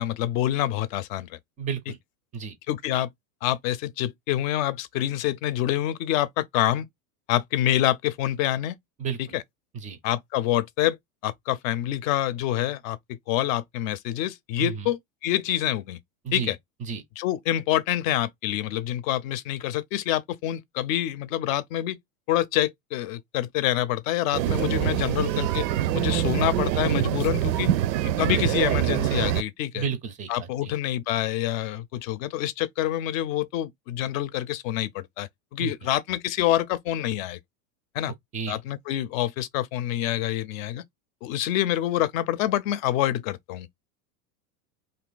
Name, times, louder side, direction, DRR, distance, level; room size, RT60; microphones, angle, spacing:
voice 1, 0.0-1.4 2.7-3.1 3.4-6.9 7.3-8.8 9.3-9.4 10.0-11.0 11.2-16.0 16.3-16.6 17.2-22.0 22.3-25.7 25.9-27.7 28.0-29.8 30.3-37.4 37.9-38.1 38.5-40.8 41.2-43.7, left 13 dB, 55° left, 0.6 m, -27 dB
voice 2, 1.6-2.0 2.3-2.6 9.0-9.4 9.7-10.0 14.6-14.9 16.2-16.5 16.8-17.0 29.7-30.7 35.6-35.9 38.3-38.6, right 6 dB, 15° right, 0.4 m, -32 dB
sound 1, 24.3-29.4, right 12 dB, 85° right, 0.6 m, -25 dB
2.6 x 2.6 x 3.9 m
supercardioid pair, 120°, 50 cm